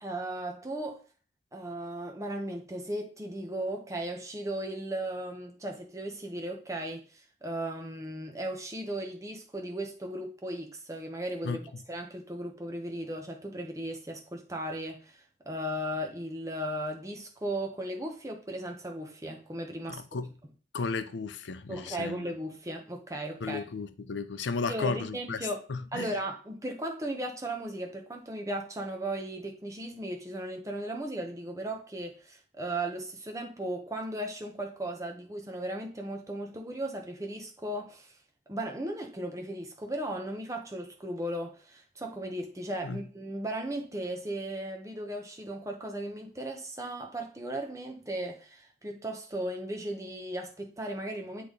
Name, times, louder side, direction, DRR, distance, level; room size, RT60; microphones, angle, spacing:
voice 1, 0.0-1.0 1.5-11.6 11.9-20.0 21.7-23.6 24.7-25.6 25.9-38.1 38.5-51.4, right 1 dB, 15° right, 1.0 m, -36 dB
voice 2, 19.9-20.3 20.7-22.3 23.4-26.1 42.8-43.0, left 4 dB, 75° left, 0.5 m, -34 dB
8.5 x 3.4 x 3.9 m
head